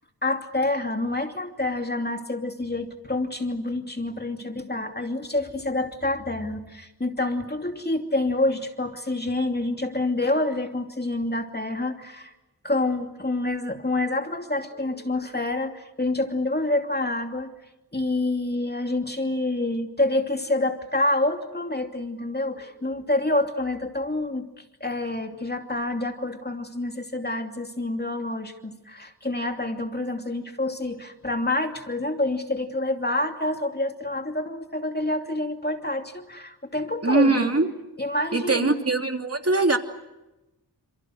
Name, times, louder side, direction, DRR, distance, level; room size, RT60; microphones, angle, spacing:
voice 1, 0.2-12.3 12.6-17.5 17.9-37.5 38.0-38.8, left 2 dB, 25° left, 5 dB, 2.8 m, -27 dB
voice 2, 37.0-37.7 38.3-39.8, right 3 dB, 35° right, 4 dB, 3.0 m, -21 dB
29.0 x 27.5 x 6.5 m, 0.97 s
wide cardioid pair, 85°, 39 cm